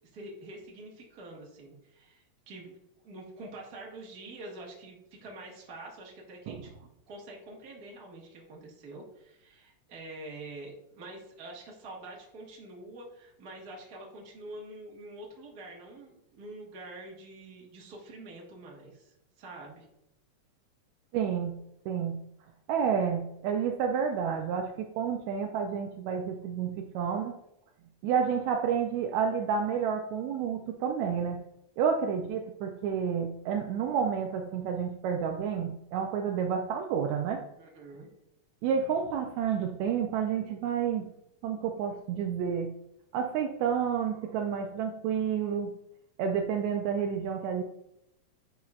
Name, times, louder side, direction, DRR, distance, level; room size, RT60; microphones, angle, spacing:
voice 1, 0.1-6.7 7.1-19.8 37.6-38.1, right 2 dB, 45° right, -2 dB, 1.5 m, -46 dB
voice 2, 21.1-21.6 21.9-22.1 22.7-27.4 28.0-31.4 31.8-37.5 38.6-41.1 41.4-42.7 43.1-45.8 46.2-47.6, right 7 dB, 80° right, 3 dB, 1.9 m, -30 dB
10.0 x 5.4 x 2.4 m, 0.82 s
omnidirectional pair, 3.3 m